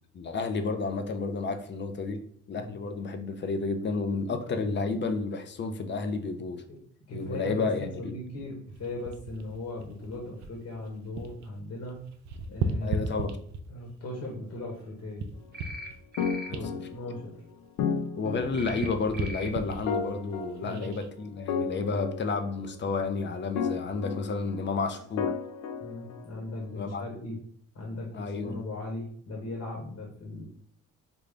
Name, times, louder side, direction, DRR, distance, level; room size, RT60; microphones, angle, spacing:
voice 1, 0.1-2.2 2.5-6.6 7.1-8.1 12.8-13.4 16.5-16.7 18.2-25.3 26.7-27.0 28.1-28.6, left 4 dB, 40° left, 7 dB, 0.5 m, -31 dB
voice 2, 7.1-12.0 12.5-13.0 13.7-15.3 16.5-17.3 20.6-20.9 25.8-27.4 27.7-30.4, left 2 dB, 55° left, -1 dB, 1.1 m, -38 dB
sound 1, 8.7-11.5 11.8-13.9 14.5-18.0 18.3-21.1 21.7-21.9, right 3 dB, 65° right, 0.5 m, -37 dB
sound 2, 15.5-15.9 16.1-16.5 18.5-18.9 19.1-19.5, left 1 dB, 35° right, 0.7 m, -40 dB
sound 3, 16.2-17.4 17.8-19.0 19.9-21.1 21.5-22.9 23.6-24.7 25.2-26.6, left 6 dB, 80° left, 0.6 m, -33 dB
3.8 x 2.3 x 3.3 m, 0.62 s
cardioid pair, 90°, 30 cm